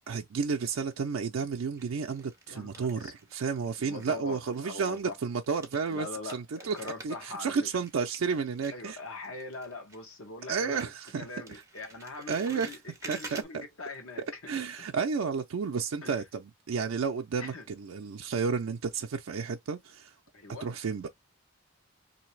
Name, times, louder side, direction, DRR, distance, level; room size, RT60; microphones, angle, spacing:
voice 1, 0.0-9.0 10.5-11.3 12.3-12.7 13.1-13.4 14.5-20.1 20.6-21.1, right 5 dB, 75° right, 0.4 m, -32 dB
sound 1, 0.6-1.2 1.8-3.6 3.9-10.3 10.6-13.4, right 3 dB, 15° right, 0.8 m, -49 dB
voice 2, 2.5-3.1 3.8-5.2 5.9-7.7 8.7-10.8 11.2-14.5 14.8-14.9 16.0-16.2 17.4-17.7 20.3-20.7, left 3 dB, 80° left, 1.1 m, -42 dB
3.2 x 2.7 x 3.1 m
head